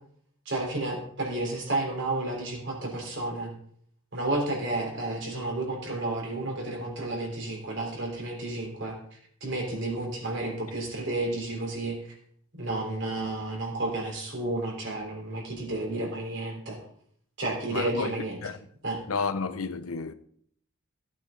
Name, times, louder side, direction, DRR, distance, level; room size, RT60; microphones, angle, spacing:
voice 1, 0.5-3.5 4.1-9.0 9.4-12.0 12.6-16.8 17.4-18.4 18.8-19.0, right 2 dB, 60° right, 3.7 m, -31 dB
voice 2, 17.7-18.1 18.4-18.5 19.1-20.1, left 4 dB, 85° left, 0.8 m, -31 dB
15.5 x 8.8 x 3.8 m
head